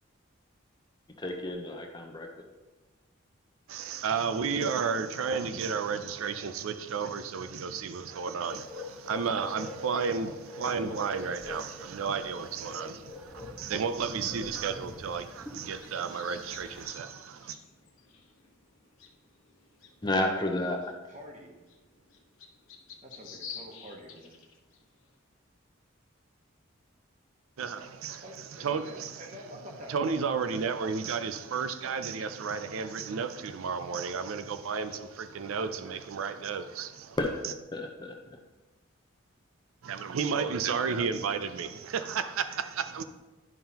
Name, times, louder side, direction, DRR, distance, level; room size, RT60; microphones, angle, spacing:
voice 1, 1.2-2.3 20.0-20.8 37.2-37.3 37.7-38.4, left 1 dB, 20° left, 0.7 m, -31 dB
voice 2, 3.7-17.6 27.6-28.2 28.6-29.2 29.9-37.2 37.4-37.5 39.8-43.0, right 5 dB, 90° right, 0.4 m, -32 dB
sound 1, 8.5-16.8, left 3 dB, ahead, 1.1 m, -45 dB
sound 2, 15.6-25.1, left 6 dB, 80° left, 1.0 m, -51 dB
voice 3, 21.1-21.6 23.0-24.4 28.2-30.2, equal, 35° right, 1.2 m, -47 dB
10.5 x 5.5 x 2.9 m
head